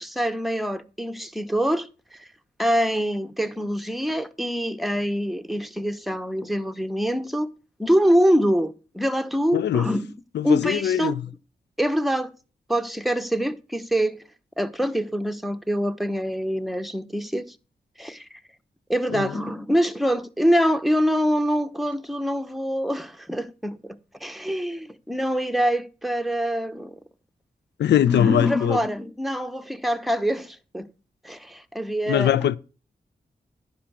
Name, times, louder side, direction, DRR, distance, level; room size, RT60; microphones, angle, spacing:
voice 1, 0.0-2.3 2.6-7.5 7.8-10.1 10.4-11.1 11.8-12.3 12.7-14.2 14.6-17.5 18.0-18.4 18.9-26.9 28.1-30.9 31.2-32.6, equal, ahead, 1.0 m, -25 dB
voice 2, 9.5-9.9 10.3-11.2 19.1-19.3 27.8-28.8 32.1-32.6, left 10 dB, 85° left, 0.4 m, -21 dB
10.0 x 5.6 x 6.2 m
cardioid pair, 40°, 18 cm